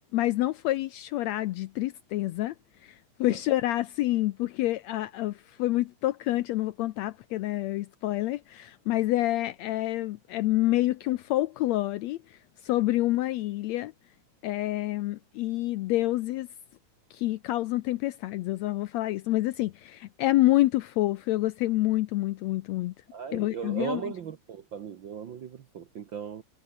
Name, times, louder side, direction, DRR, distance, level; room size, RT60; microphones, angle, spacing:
voice 1, 0.1-2.5 2.8-13.9 14.4-16.5 17.1-22.9 23.3-24.0, left 16 dB, 80° left, 1.6 m, -28 dB
voice 2, 23.1-26.4, right 7 dB, 60° right, 1.2 m, -37 dB
omnidirectional pair, 3.6 m